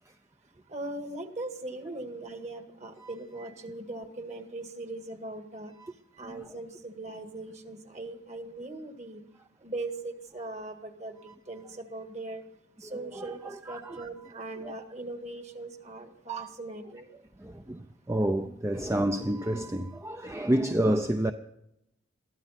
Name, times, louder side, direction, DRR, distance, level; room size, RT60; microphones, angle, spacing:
voice 1, 0.7-5.7 6.2-9.2 9.6-12.4 12.8-17.1, right 2 dB, 35° right, 1.7 m, -40 dB
voice 2, 12.8-14.0 14.6-14.7 17.4-21.3, right 1 dB, 15° right, 0.5 m, -29 dB
22.5 x 14.5 x 4.2 m
head